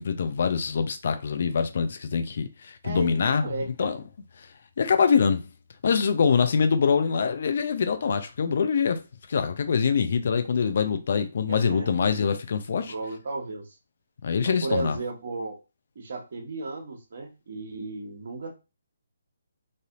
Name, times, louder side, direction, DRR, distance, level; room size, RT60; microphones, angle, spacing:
voice 1, 0.0-3.5 3.8-4.0 4.4-4.5 4.8-5.5 5.8-9.0 9.3-12.9 14.2-15.0, left 6 dB, 55° left, 0.5 m, -24 dB
voice 2, 2.8-3.9 11.5-12.2 12.7-13.8 14.4-15.6 15.9-18.6, right 3 dB, 55° right, 1.0 m, -34 dB
3.3 x 2.6 x 2.5 m
figure-of-eight pair, 145°, 0 cm